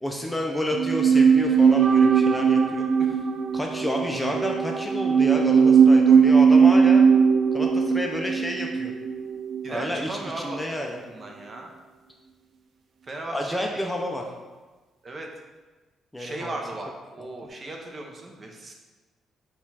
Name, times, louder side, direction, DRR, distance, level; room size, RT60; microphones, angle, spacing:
voice 1, 0.0-2.9 3.5-7.0 7.5-8.9 9.7-11.0 13.3-14.3 16.1-16.6, equal, 10° left, 1 dB, 0.4 m, -30 dB
sound 1, 0.7-10.1 10.3-10.4, right 6 dB, 65° right, 0.3 m, -19 dB
voice 2, 9.6-10.6 11.1-11.7 13.0-13.9 15.0-15.3 16.2-18.7, right 2 dB, 35° right, 1 dB, 0.7 m, -37 dB
4.2 x 2.4 x 4.0 m, 1.2 s
cardioid pair, 90°, 0 cm